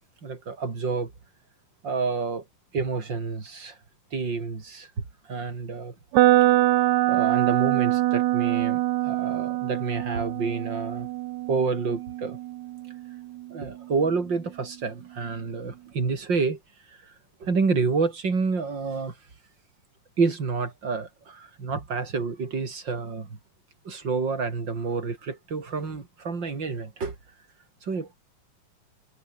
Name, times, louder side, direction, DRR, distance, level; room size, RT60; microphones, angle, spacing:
voice 1, 0.2-1.1 1.8-2.4 2.7-3.8 4.1-5.9 7.1-11.1 11.5-12.4 13.5-16.6 17.4-19.1 20.2-23.3 23.8-27.2 27.8-28.2, right 4 dB, 30° right, 4.0 m, -28 dB
sound 1, 6.1-14.1, right 16 dB, 75° right, 1.8 m, -24 dB
omnidirectional pair, 4.0 m